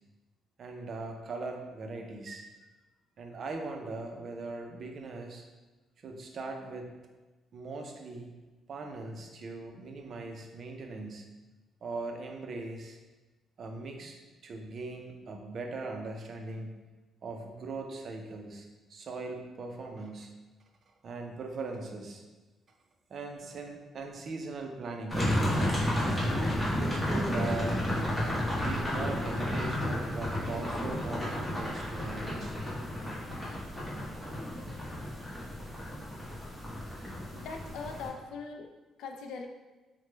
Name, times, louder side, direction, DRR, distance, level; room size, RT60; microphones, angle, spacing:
voice 1, 0.6-2.4 3.2-5.5 6.0-6.9 7.5-8.4 8.7-11.2 11.8-13.0 13.6-14.2 14.4-16.7 17.2-20.3 21.0-22.2 23.1-25.2 26.7-27.8 28.6-32.6 36.5-36.7, right 3 dB, 55° right, 3 dB, 0.4 m, -40 dB
sound 1, 25.1-38.1, left 1 dB, 5° left, 1.0 m, -32 dB
voice 2, 37.3-38.7 39.0-39.5, left 4 dB, 85° left, 3 dB, 0.3 m, -41 dB
3.0 x 2.1 x 3.2 m, 1.2 s
cardioid pair, 90°, 0 cm